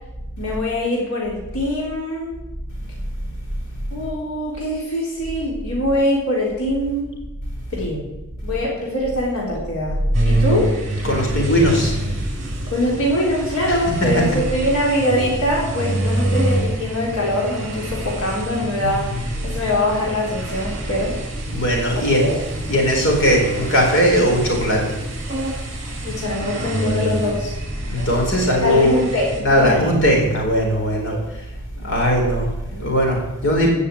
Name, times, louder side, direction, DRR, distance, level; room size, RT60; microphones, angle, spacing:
voice 1, 0.4-2.3 3.9-7.1 7.7-8.0 8.4-10.0 10.2-10.7 12.7-21.2 22.0-22.4 26.0-27.5 28.6-29.9, left 1 dB, 80° left, -3 dB, 3.8 m, -23 dB
sound 1, 10.1-29.4, right 1 dB, 35° right, 5.8 m, -27 dB
voice 2, 11.0-11.9 13.7-14.1 18.8-19.3 21.5-22.3 22.7-24.8 27.9-28.9 29.4-31.1 31.8-33.7, equal, 60° left, 0 dB, 4.3 m, -19 dB
16.0 x 6.7 x 8.4 m, 0.99 s
head